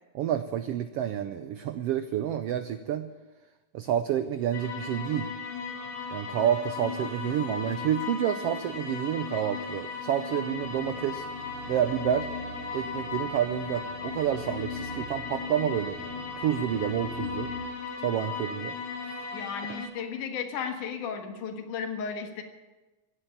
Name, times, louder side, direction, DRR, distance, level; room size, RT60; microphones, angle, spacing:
voice 1, 0.1-3.1 3.7-5.3 6.1-11.3 11.7-12.3 12.7-17.5 18.0-18.7, right 10 dB, 90° right, 10 dB, 1.3 m, -29 dB
sound 1, 4.5-19.9, left 5 dB, 65° left, 3.6 m, -36 dB
sound 2, 10.5-17.6, right 2 dB, 60° right, 5.1 m, -45 dB
voice 2, 19.3-22.4, left 6 dB, 85° left, 5 dB, 3.0 m, -34 dB
16.0 x 9.9 x 8.6 m, 1.2 s
omnidirectional pair, 3.5 m